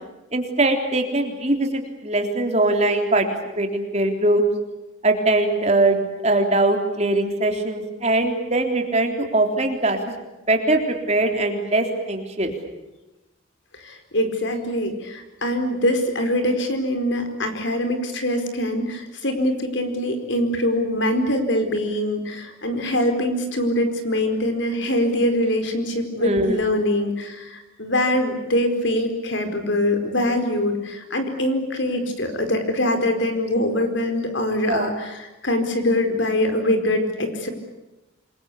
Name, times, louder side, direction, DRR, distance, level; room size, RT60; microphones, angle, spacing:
voice 1, 0.3-3.3 3.6-4.4 5.0-10.1 10.5-12.5 26.2-26.7 34.7-34.9, right 2 dB, 35° right, 4 dB, 3.6 m, -21 dB
voice 2, 13.8-37.5, left 1 dB, 65° left, 7 dB, 4.7 m, -23 dB
27.5 x 22.5 x 8.5 m, 1.0 s
head